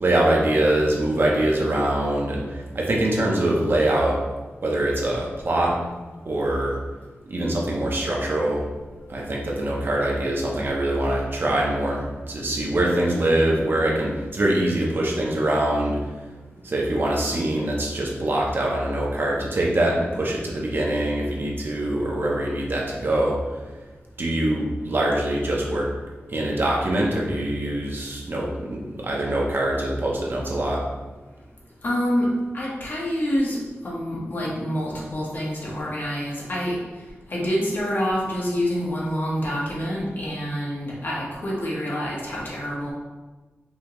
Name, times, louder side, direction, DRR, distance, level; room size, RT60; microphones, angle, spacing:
voice 1, 0.0-4.2 4.6-5.8 6.2-6.8 7.3-8.6 9.1-16.0 16.6-23.4 24.2-25.9 26.3-30.8, right 1 dB, 55° right, -2 dB, 0.9 m, -23 dB
voice 2, 31.8-32.3 32.5-33.6 33.8-36.8 37.3-42.9, equal, 50° left, -5 dB, 1.3 m, -27 dB
5.4 x 3.0 x 3.1 m, 1.2 s
wide cardioid pair, 125°, 4 cm